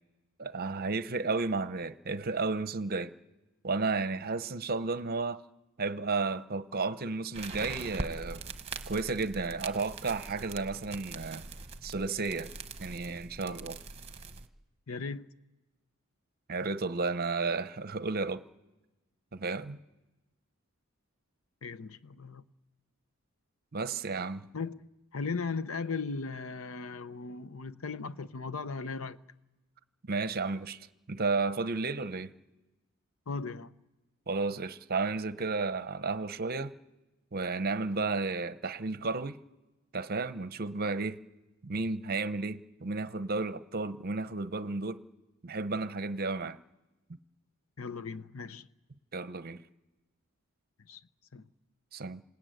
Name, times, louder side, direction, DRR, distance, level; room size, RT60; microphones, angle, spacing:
voice 1, 0.4-3.1 3.6-5.4 5.8-8.5 8.9-11.5 11.8-12.5 12.8-13.8 16.5-18.4 19.3-19.8 23.7-24.5 30.1-32.3 34.3-36.7 37.3-39.4 39.9-41.2 41.6-45.0 45.4-46.6 49.1-49.6 51.9-52.2, right 3 dB, 45° right, 0.8 m, -33 dB
sound 1, 7.3-14.5, right 3 dB, 30° right, 1.1 m, -42 dB
voice 2, 14.9-15.3 21.6-22.4 24.5-24.8 25.1-29.2 33.3-33.7 47.8-48.7 50.9-51.0 51.3-51.4, left 4 dB, 75° left, 0.8 m, -37 dB
27.0 x 18.5 x 9.2 m
head